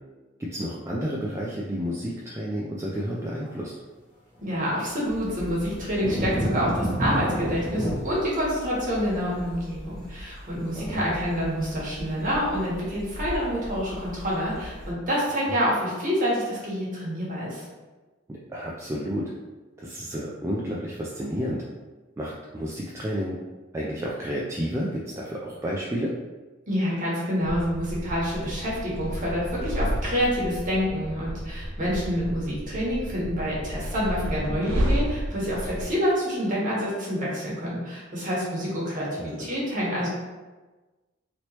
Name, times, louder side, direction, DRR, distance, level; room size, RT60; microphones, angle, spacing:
voice 1, 0.4-3.7 10.7-11.2 18.3-19.3 19.8-21.6 22.2-23.4 23.7-26.1 39.1-39.5, equal, 15° right, -5 dB, 0.3 m, -31 dB
sound 1, 3.4-3.5 4.5-7.9, right 1 dB, 40° left, 1.2 m, -28 dB
voice 2, 4.4-17.6 26.7-40.1, equal, 40° right, -6 dB, 1.2 m, -27 dB
sound 2, 5.0-14.9, equal, ahead, 0.9 m, -41 dB
sound 3, 27.4-35.9, equal, 90° right, 0.5 m, -31 dB
3.1 x 3.0 x 2.9 m, 1.2 s
head